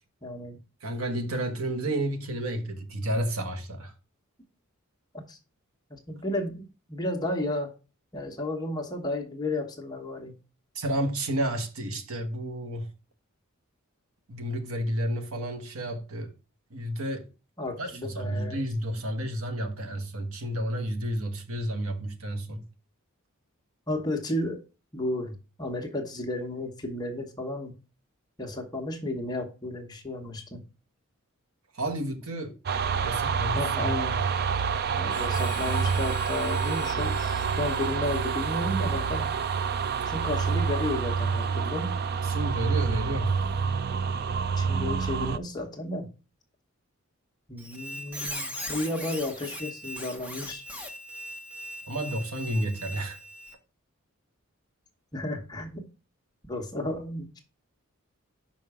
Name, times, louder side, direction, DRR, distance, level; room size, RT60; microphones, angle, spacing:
voice 1, 0.2-0.6 5.3-5.4 5.9-6.6 6.9-7.7 8.1-10.4 17.6-18.6 23.9-24.6 24.9-27.7 28.4-30.6 33.5-34.2 34.9-39.3 40.0-41.9 44.6-46.1 47.5-50.6 55.1-55.8 56.5-57.4, left 1 dB, 20° left, 1.1 m, -33 dB
voice 2, 0.8-3.9 10.7-12.9 14.3-16.3 16.7-17.3 17.8-22.7 31.7-32.5 33.0-34.2 42.2-43.4 51.9-53.2, right 1 dB, 85° right, 1.2 m, -31 dB
sound 1, 32.7-45.4, right 6 dB, 45° right, 0.4 m, -27 dB
Harmonica, 35.1-42.8, left 7 dB, 50° left, 1.2 m, -48 dB
Squeak, 47.6-53.5, equal, 5° right, 0.8 m, -39 dB
5.7 x 5.3 x 4.9 m
head